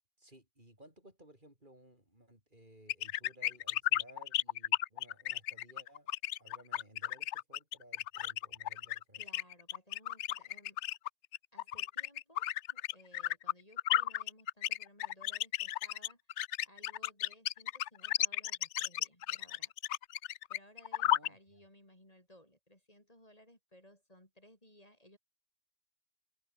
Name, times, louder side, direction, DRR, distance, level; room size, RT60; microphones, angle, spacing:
voice 1, 0.2-9.2 21.0-21.6, right 1 dB, 45° right, 7.4 m, -59 dB
sound 1, 2.9-21.3, left 13 dB, 80° left, 0.9 m, -34 dB
voice 2, 9.2-10.8 11.5-19.7 20.5-25.2, left 1 dB, 30° left, 6.9 m, -61 dB
omnidirectional pair, 1.2 m